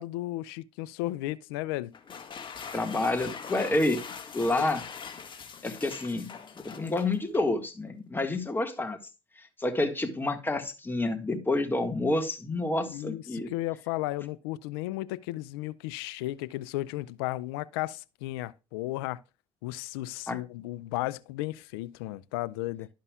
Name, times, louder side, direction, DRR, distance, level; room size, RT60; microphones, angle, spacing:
voice 1, 0.0-1.9 4.6-4.7 12.9-19.2 19.6-22.9, left 17 dB, 90° left, 0.4 m, -34 dB
sound 1, 1.9-7.5, left 6 dB, 40° left, 1.6 m, -42 dB
voice 2, 2.7-4.0 4.3-4.8 5.6-6.3 6.6-9.0 9.4-13.5 20.3-20.4, left 2 dB, 15° left, 1.6 m, -29 dB
12.0 x 5.5 x 2.3 m
supercardioid pair, 70°, 12 cm